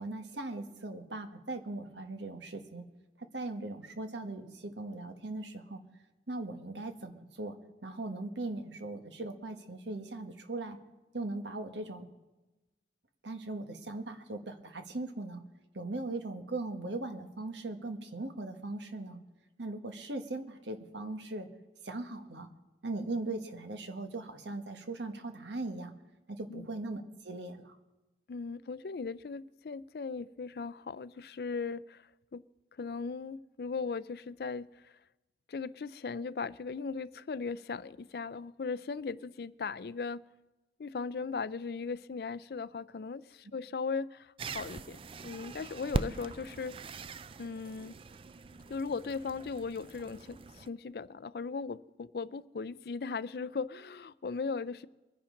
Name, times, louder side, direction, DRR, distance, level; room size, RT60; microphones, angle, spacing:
voice 1, 0.0-2.9 3.2-5.8 6.3-7.6 7.8-10.8 11.1-12.1 13.2-15.5 15.7-19.2 19.6-21.5 21.8-22.5 22.8-26.0 26.3-27.7, right 2 dB, 85° right, 1.4 m, -39 dB
voice 2, 28.3-32.4 32.7-34.9 35.5-40.2 40.8-46.8 47.4-47.9 48.7-54.9, left 4 dB, 60° left, 0.4 m, -38 dB
sound 1, 44.4-50.7, right 3 dB, 30° right, 0.4 m, -41 dB
24.0 x 10.0 x 3.8 m
head